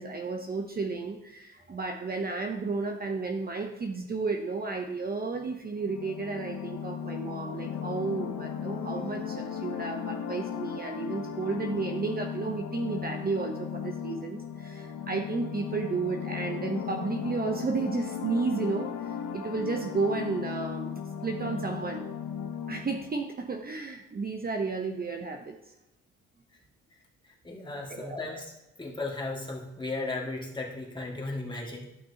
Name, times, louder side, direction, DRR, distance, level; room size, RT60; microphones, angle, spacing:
voice 1, 0.0-22.1 22.7-25.6 27.9-28.2, right 4 dB, 30° right, 3 dB, 0.8 m, -32 dB
sound 1, 5.8-23.1, left 8 dB, 75° left, 1.0 m, -36 dB
voice 2, 27.4-28.5 28.8-31.9, left 2 dB, 15° left, -2 dB, 2.0 m, -35 dB
12.0 x 6.0 x 2.9 m, 0.95 s
cardioid pair, 90°, 30 cm